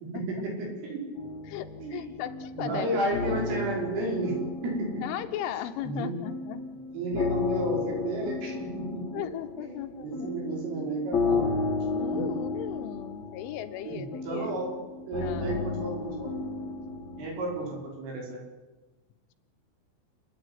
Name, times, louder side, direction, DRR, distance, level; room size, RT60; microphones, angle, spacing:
voice 1, 0.3-1.0 1.8-2.0 2.5-4.3 4.6-5.0 5.8-6.1 6.9-9.2 9.6-11.5 12.1-12.2 13.9-14.8 15.0-16.3 17.2-18.4, right 2 dB, 85° right, -1 dB, 7.7 m, -32 dB
sound 1, 1.2-5.9 6.2-17.8, left 4 dB, 55° left, 1.9 m, -33 dB
voice 2, 1.5-3.0 5.0-6.6 9.1-10.3 11.9-14.5 15.2-15.5, left 11 dB, 80° left, 8 dB, 3.6 m, -37 dB
29.5 x 10.5 x 9.8 m, 1.1 s
omnidirectional pair, 5.6 m